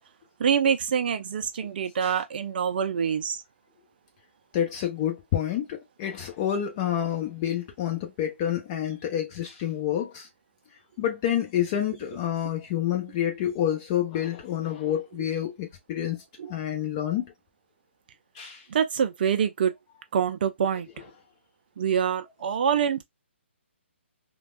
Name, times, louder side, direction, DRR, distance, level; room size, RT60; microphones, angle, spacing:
voice 1, 0.4-3.4 16.4-16.5 18.7-19.8 20.1-20.9 21.8-23.0, right 7 dB, 45° right, 0.4 m, -25 dB
voice 2, 4.5-10.2 11.0-16.2 16.5-17.3 18.4-18.6, left 10 dB, 30° left, 1.0 m, -28 dB
3.3 x 2.3 x 2.2 m
hypercardioid pair, 145°, 7 cm